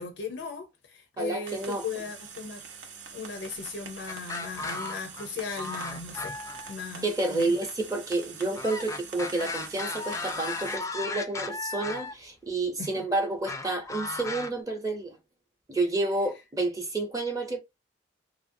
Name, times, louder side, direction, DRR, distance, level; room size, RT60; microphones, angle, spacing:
voice 1, 0.0-2.6 3.1-6.4 6.7-7.5 12.8-13.0, left 5 dB, 75° left, 0.5 m, -37 dB
voice 2, 1.2-1.8 7.0-15.2 15.7-17.6, right 2 dB, 20° right, 0.7 m, -30 dB
sound 1, 1.5-10.8, right 6 dB, 75° right, 0.6 m, -45 dB
sound 2, 4.1-5.3 5.6-6.8 8.5-12.1 13.5-14.5, left 3 dB, 15° left, 0.4 m, -35 dB
2.8 x 2.5 x 2.6 m
head